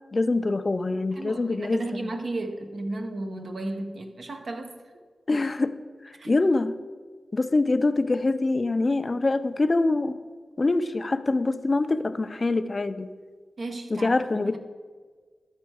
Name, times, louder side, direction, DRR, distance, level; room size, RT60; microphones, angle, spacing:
voice 1, 0.1-2.1 5.3-5.7 6.0-6.7 7.3-10.1 10.6-13.1 13.9-14.6, left 2 dB, 35° left, 11 dB, 0.4 m, -24 dB
voice 2, 1.2-4.7 6.2-6.4 13.6-14.6, right 2 dB, 60° right, 5 dB, 0.8 m, -34 dB
12.5 x 4.4 x 4.7 m, 1.5 s
wide cardioid pair, 100°, 0 cm